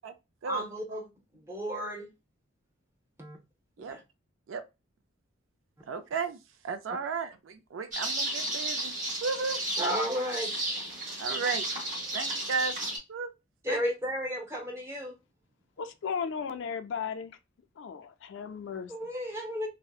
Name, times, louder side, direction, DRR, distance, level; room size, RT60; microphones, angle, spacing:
voice 1, 0.5-1.1 1.4-2.1 3.2-3.4 3.9-4.0 9.8-10.5 13.6-15.1 18.9-19.7, equal, 15° right, 0.7 m, -33 dB
voice 2, 5.9-6.4 6.6-8.9 9.2-9.6 11.2-11.7 12.1-12.7 13.1-13.3 13.7-13.8, right 5 dB, 65° right, 0.4 m, -34 dB
sound 1, 7.9-13.0, right 1 dB, 40° right, 1.0 m, -33 dB
voice 3, 15.8-17.4 17.8-18.9, left 6 dB, 60° left, 0.4 m, -35 dB
2.7 x 2.1 x 2.3 m
head